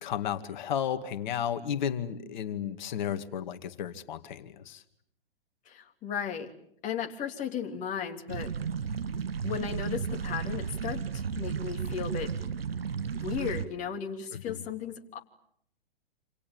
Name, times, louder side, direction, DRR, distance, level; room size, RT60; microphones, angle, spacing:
voice 1, 0.0-4.8 14.3-14.6, left 9 dB, 50° left, 9 dB, 2.3 m, -33 dB
voice 2, 5.7-6.5 6.8-8.5 9.4-12.3 13.1-15.2, left 7 dB, 25° left, 3 dB, 3.2 m, -35 dB
sound 1, 8.3-13.7, right 6 dB, 75° right, 1.4 m, -33 dB
28.0 x 28.0 x 7.3 m, 0.68 s
figure-of-eight pair, 120°, 30 cm